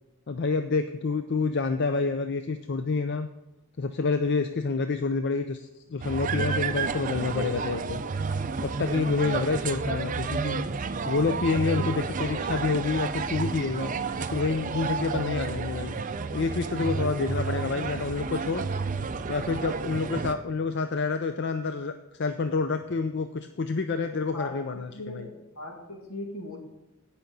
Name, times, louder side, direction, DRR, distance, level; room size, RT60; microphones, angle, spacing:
voice 1, 0.3-3.3 3.8-8.0 8.6-10.6 11.0-16.0 16.3-18.7 19.3-25.3, left 4 dB, 50° left, 8 dB, 0.5 m, -28 dB
sound 1, 6.0-20.3, right 4 dB, 35° right, 0.4 m, -31 dB
voice 2, 24.3-26.6, left 1 dB, 70° left, 1 dB, 2.2 m, -39 dB
16.5 x 5.8 x 3.9 m, 0.95 s
head